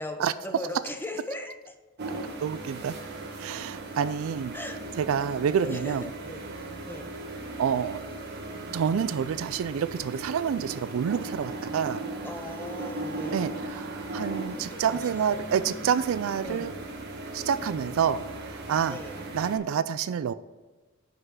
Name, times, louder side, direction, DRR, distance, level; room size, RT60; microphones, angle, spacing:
voice 1, 0.0-1.7 4.5-5.1 5.6-6.4 6.8-7.1 12.2-13.6 14.7-15.4 15.8-15.9 16.4-16.7 17.6-17.9 18.9-19.2 20.0-20.1, left 1 dB, 10° left, 6 dB, 0.6 m, -39 dB
sound 1, 2.0-19.6, right 2 dB, 50° right, 1.2 m, -38 dB
voice 2, 2.4-3.0 3.4-4.6 5.0-6.0 7.6-8.1 8.7-12.0 13.3-16.7 17.3-19.0 19.3-20.3, right 7 dB, 70° right, 14 dB, 0.3 m, -28 dB
5.9 x 5.5 x 6.2 m, 1.2 s
head